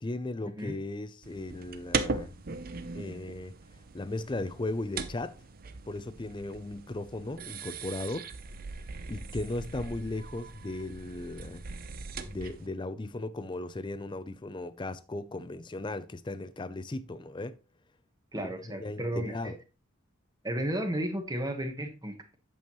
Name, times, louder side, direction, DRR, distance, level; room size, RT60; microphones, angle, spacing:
voice 1, 0.0-2.4 2.9-3.6 3.9-5.4 5.9-8.3 9.1-11.7 12.2-17.6 18.4-19.6, left 2 dB, 20° left, 0.4 m, -37 dB
sound 1, 1.2-12.7, right 4 dB, 40° right, 0.6 m, -39 dB
voice 2, 18.3-19.5 20.4-22.3, right 1 dB, 15° right, 1.0 m, -33 dB
8.5 x 7.1 x 3.0 m
head